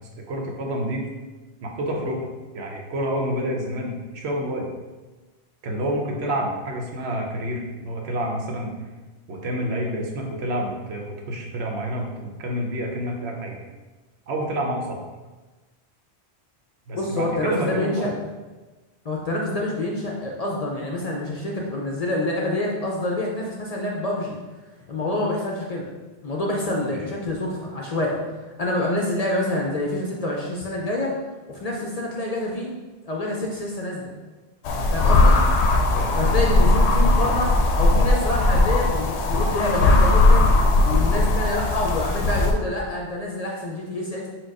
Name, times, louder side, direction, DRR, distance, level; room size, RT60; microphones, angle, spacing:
voice 1, 0.3-1.1 1.6-2.3 2.5-4.7 5.6-8.7 9.3-13.6 14.3-15.0 16.9-18.1 26.9-27.0 35.9-36.1, equal, 80° right, 0 dB, 1.0 m, -28 dB
voice 2, 16.9-18.1 19.0-24.4 24.9-25.9 26.2-28.2 28.6-31.1 31.5-32.7 33.1-34.1 34.9-35.4 36.2-40.5 40.8-44.3, left 1 dB, 45° left, -2 dB, 0.5 m, -27 dB
sound 1, 34.7-42.5, left 2 dB, 90° left, 0.9 m, -18 dB
4.5 x 2.3 x 4.6 m, 1.2 s
omnidirectional pair, 1.1 m